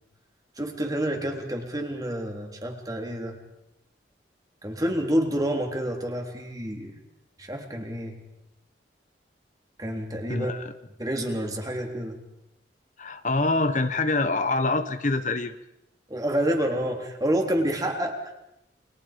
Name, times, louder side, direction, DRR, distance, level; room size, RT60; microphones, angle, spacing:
voice 1, 0.6-3.4 4.6-6.9 7.4-8.2 9.8-10.6 11.0-12.2 16.1-18.2, right 1 dB, 20° right, 3 dB, 3.5 m, -28 dB
voice 2, 10.3-10.7 13.0-15.5, left 3 dB, 45° left, 9 dB, 1.1 m, -25 dB
29.5 x 25.5 x 5.2 m, 0.82 s
head